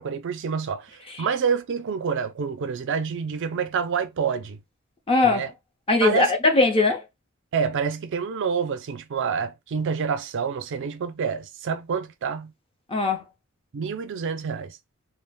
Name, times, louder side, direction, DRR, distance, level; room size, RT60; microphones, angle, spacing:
voice 1, 0.0-4.6 5.2-5.5 6.0-6.3 7.5-12.5 13.7-14.8, right 6 dB, 60° right, 0.4 m, -27 dB
voice 2, 5.1-5.5 5.9-7.0 12.9-13.2, left 3 dB, 25° left, 0.7 m, -20 dB
2.4 x 2.1 x 3.3 m
head